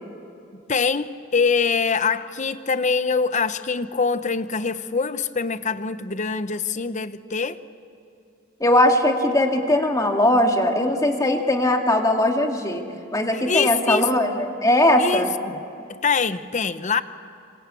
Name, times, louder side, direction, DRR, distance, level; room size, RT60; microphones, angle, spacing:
voice 1, 0.5-7.6 13.5-14.1 15.0-15.6 15.9-17.0, left 5 dB, 35° left, 12 dB, 0.8 m, -24 dB
voice 2, 8.6-12.8 13.1-15.3, left 1 dB, 15° left, 3 dB, 2.3 m, -20 dB
26.5 x 26.0 x 8.4 m, 2.5 s
head